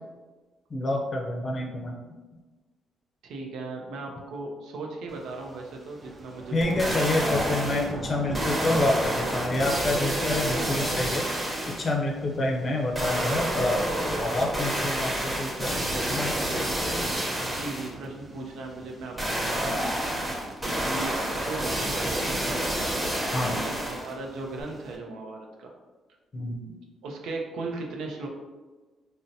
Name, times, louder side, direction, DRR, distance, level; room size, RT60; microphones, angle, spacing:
voice 1, 0.7-2.0 6.5-11.3 11.7-13.8 14.2-15.8 16.1-16.3 23.3-23.6 26.3-26.6, left 2 dB, 40° left, 1 dB, 0.5 m, -28 dB
voice 2, 3.2-7.0 17.4-19.8 20.8-22.4 23.5-25.7 27.0-28.3, right 3 dB, 85° right, 1 dB, 0.5 m, -37 dB
sound 1, 5.1-25.0, right 2 dB, 35° right, 0.5 m, -43 dB
sound 2, 6.6-7.9 8.3-11.9 12.9-17.9 19.2-24.1 24.6-24.7, right 1 dB, 15° right, 0.8 m, -29 dB
3.8 x 2.0 x 2.7 m, 1.2 s
cardioid pair, 90°, 0 cm